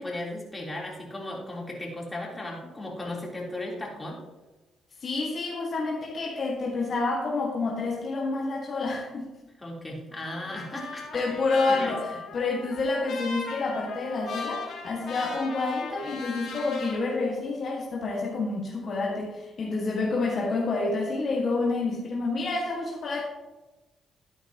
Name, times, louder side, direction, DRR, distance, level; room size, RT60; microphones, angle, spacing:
voice 1, 0.0-4.2 9.6-11.2 11.7-12.2, left 1 dB, 15° left, -3 dB, 3.4 m, -36 dB
voice 2, 5.0-9.3 11.1-23.2, left 3 dB, 50° left, -2 dB, 1.7 m, -28 dB
Trumpet, 10.2-17.0, left 4 dB, 65° left, 2.2 m, -39 dB
12.5 x 9.3 x 3.0 m, 1.1 s
cardioid pair, 90°, 0 cm